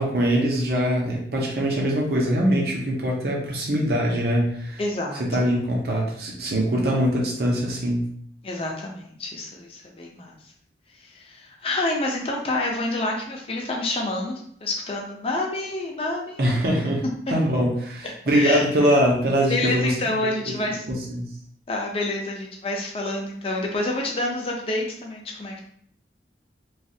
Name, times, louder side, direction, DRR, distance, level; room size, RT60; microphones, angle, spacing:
voice 1, 0.0-4.8 5.2-8.1 16.4-17.0 17.3-19.9 21.1-21.3, equal, 60° right, -1 dB, 0.7 m, -22 dB
voice 2, 4.8-5.2 8.4-10.4 11.0-16.6 18.3-18.9 19.5-20.8 21.7-25.6, left 2 dB, 35° left, 0 dB, 0.5 m, -28 dB
3.2 x 2.4 x 2.7 m, 0.64 s
head